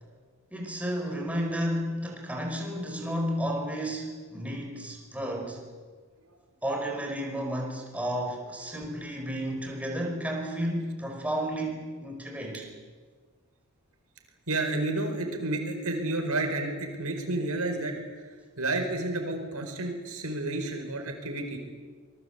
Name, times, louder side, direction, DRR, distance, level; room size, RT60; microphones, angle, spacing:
voice 1, 0.5-5.6 6.6-12.6, equal, 5° right, 0 dB, 4.7 m, -32 dB
voice 2, 14.5-18.0 18.6-21.6, right 2 dB, 80° right, 5 dB, 4.8 m, -30 dB
25.5 x 22.0 x 8.2 m, 1.5 s
head